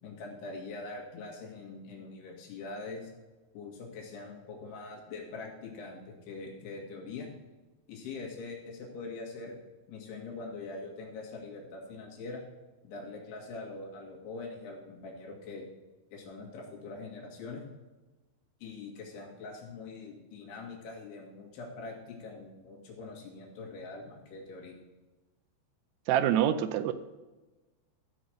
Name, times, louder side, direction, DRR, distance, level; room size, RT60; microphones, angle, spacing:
voice 1, 0.0-3.1 3.5-7.3 7.9-9.6 9.9-12.4 12.8-15.7 16.1-17.6 18.6-24.8, left 3 dB, 80° left, -1 dB, 4.1 m, -43 dB
voice 2, 26.1-26.9, right 10 dB, 85° right, 12 dB, 2.7 m, -26 dB
15.0 x 5.1 x 6.3 m, 1.2 s
omnidirectional pair, 4.7 m